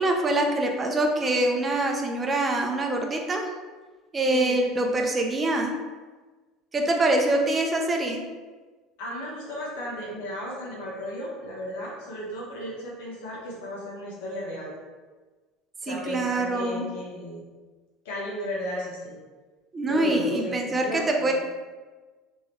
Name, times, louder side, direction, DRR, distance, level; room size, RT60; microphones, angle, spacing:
voice 1, 0.0-3.5 4.1-5.7 6.7-8.2 15.9-16.9 19.7-21.3, right 2 dB, 25° right, 2 dB, 0.6 m, -24 dB
voice 2, 4.3-4.6 9.0-14.7 15.8-17.4 18.0-19.2 19.9-21.3, equal, 90° left, -5 dB, 1.4 m, -35 dB
3.5 x 3.3 x 3.1 m, 1.3 s
supercardioid pair, 115°, 0 cm